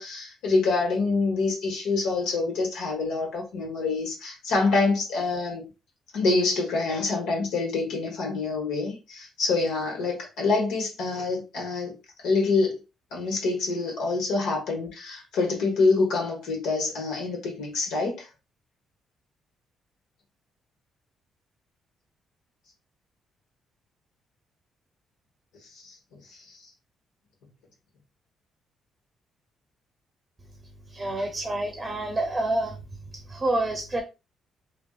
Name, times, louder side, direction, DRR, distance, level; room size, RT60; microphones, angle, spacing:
voice 1, 0.0-5.6 6.1-12.0 12.2-12.8 13.1-18.3 25.7-26.6, left 3 dB, 90° left, 1.2 m, -26 dB
voice 2, 30.9-32.8 33.1-34.0, right 2 dB, 20° right, 0.6 m, -28 dB
3.4 x 2.3 x 2.3 m
cardioid pair, 90°, 0 cm